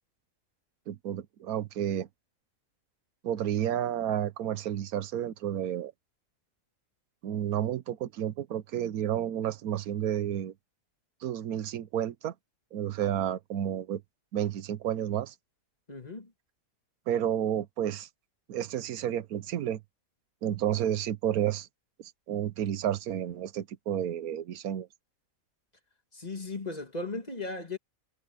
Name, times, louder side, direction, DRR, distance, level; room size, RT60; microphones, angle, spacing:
voice 1, 0.9-2.1 3.2-5.9 7.2-10.5 11.2-12.3 12.7-14.0 14.3-15.3 17.1-18.1 18.5-19.8 20.4-21.7 22.0-24.9, right 10 dB, 85° right, 1.3 m, -31 dB
voice 2, 15.9-16.3 26.1-27.8, left 3 dB, 30° left, 1.9 m, -36 dB
omnidirectional pair, 1.5 m